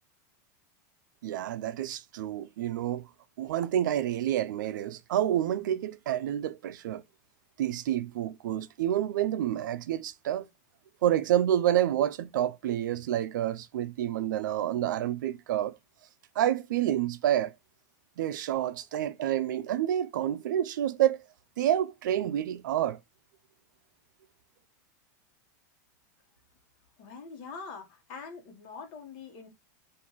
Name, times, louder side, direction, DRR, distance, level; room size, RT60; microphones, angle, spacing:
voice 1, 1.2-3.1 3.4-7.0 7.6-10.5 11.0-15.8 16.4-17.5 18.2-21.2 21.6-23.0, right 11 dB, 90° right, 0.4 m, -28 dB
voice 2, 27.0-29.5, left 5 dB, 50° left, 1.1 m, -44 dB
3.9 x 2.5 x 3.0 m
supercardioid pair, 150°, 10 cm